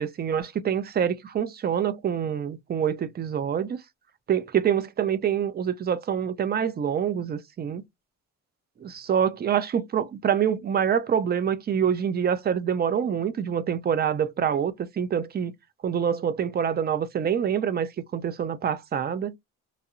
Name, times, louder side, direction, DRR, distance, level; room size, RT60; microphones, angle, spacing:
voice 1, 0.0-3.8 4.3-7.8 8.8-15.5 15.8-19.3, right 8 dB, 35° right, 0.4 m, -26 dB
2.7 x 2.0 x 2.4 m
cardioid pair, 90°, 30 cm